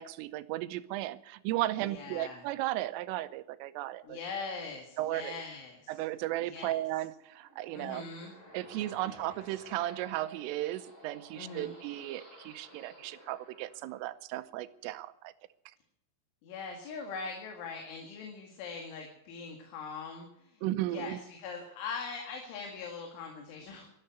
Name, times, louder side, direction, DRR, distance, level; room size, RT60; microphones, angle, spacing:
voice 1, 0.0-4.2 5.0-5.4 5.9-8.1 8.5-15.3 20.6-21.2, right 15 dB, 85° right, 13 dB, 3.4 m, -35 dB
voice 2, 1.9-2.4 4.0-6.0 6.4-6.8 7.7-8.3 9.0-9.3 11.4-11.7 16.4-20.6 20.9-23.9, left 5 dB, 70° left, 2 dB, 4.5 m, -42 dB
sound 1, 7.1-14.4, equal, 20° left, 3.9 m, -54 dB
12.5 x 12.5 x 9.3 m, 0.81 s
omnidirectional pair, 5.8 m